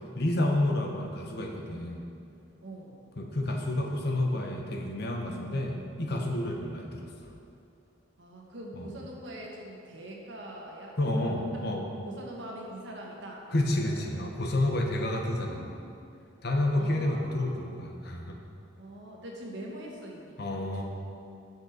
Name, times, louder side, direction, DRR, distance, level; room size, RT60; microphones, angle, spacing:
voice 1, 0.2-2.1 3.2-7.3 8.8-8.9 11.0-11.9 13.5-15.7 16.4-18.4 20.4-20.8, left 1 dB, 55° left, 1 dB, 1.0 m, -30 dB
voice 2, 2.6-2.9 6.5-6.7 8.2-11.4 12.0-14.0 15.0-16.0 16.7-17.7 18.8-20.8, right 1 dB, 65° right, -1 dB, 1.4 m, -44 dB
9.0 x 6.6 x 5.0 m, 2.5 s
head